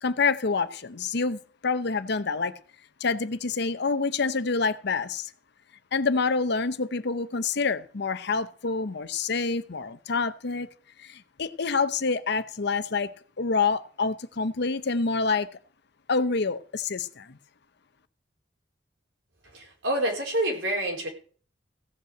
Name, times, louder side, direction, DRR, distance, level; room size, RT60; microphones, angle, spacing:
voice 1, 0.0-2.5 3.0-5.3 5.9-10.7 11.0-13.1 13.4-15.5 16.1-17.4, left 4 dB, 60° left, 0.8 m, -27 dB
voice 2, 19.5-21.1, right 1 dB, 80° right, 4.4 m, -27 dB
16.0 x 5.6 x 7.8 m
head